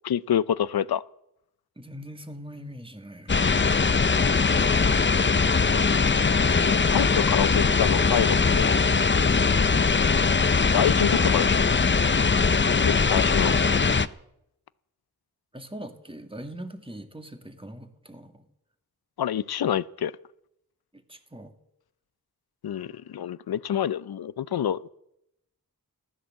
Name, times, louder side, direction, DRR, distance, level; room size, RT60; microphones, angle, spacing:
voice 1, 0.0-1.0 6.7-8.7 10.7-11.7 12.8-13.5 19.2-20.1 22.6-24.9, left 9 dB, 85° left, 0.6 m, -27 dB
voice 2, 1.8-3.4 4.7-5.1 15.5-18.4 20.9-21.5, equal, 15° right, 2.1 m, -42 dB
sound 1, 3.3-14.1, left 4 dB, 30° left, 0.6 m, -21 dB
14.5 x 13.0 x 7.5 m
wide cardioid pair, 55°, 37 cm